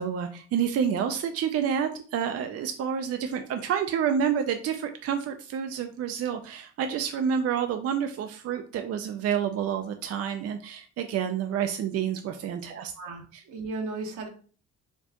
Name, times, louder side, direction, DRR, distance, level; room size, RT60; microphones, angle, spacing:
voice 1, 0.0-12.9 13.3-13.4, right 8 dB, 55° right, 6 dB, 0.4 m, -29 dB
voice 2, 13.0-14.3, right 3 dB, 80° right, 2 dB, 1.0 m, -35 dB
4.3 x 2.4 x 2.8 m, 0.41 s
cardioid pair, 90°, 30 cm